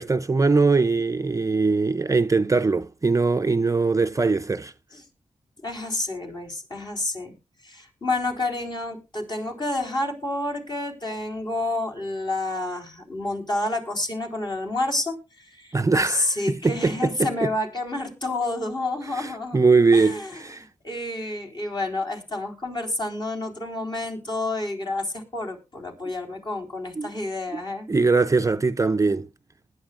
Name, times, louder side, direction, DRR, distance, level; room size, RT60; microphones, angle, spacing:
voice 1, 0.0-4.7 15.7-17.5 19.1-20.6 27.0-27.1 27.9-29.3, right 4 dB, 25° right, 0.5 m, -21 dB
voice 2, 5.6-7.3 7.6-19.6 19.9-27.9, left 2 dB, 35° left, 4.1 m, -29 dB
20.0 x 9.6 x 2.5 m
wide cardioid pair, 100°, 12 cm